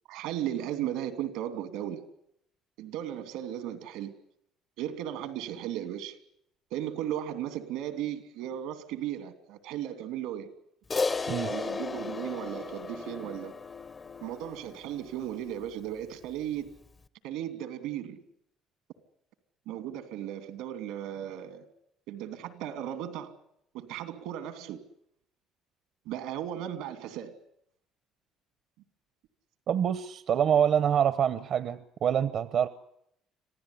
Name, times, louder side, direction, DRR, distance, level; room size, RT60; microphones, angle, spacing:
voice 1, 0.1-2.0 2.8-4.2 4.8-6.2 6.7-10.5 11.5-13.5 14.2-16.7 17.2-18.2 19.7-21.7 22.1-23.4 23.7-24.8 26.0-27.3, right 11 dB, 90° right, 2.8 m, -36 dB
Crash cymbal, 10.9-15.5, left 4 dB, 25° left, 0.9 m, -35 dB
voice 2, 29.7-32.7, right 9 dB, 55° right, 1.0 m, -26 dB
26.5 x 16.0 x 9.9 m
cardioid pair, 115°, 0 cm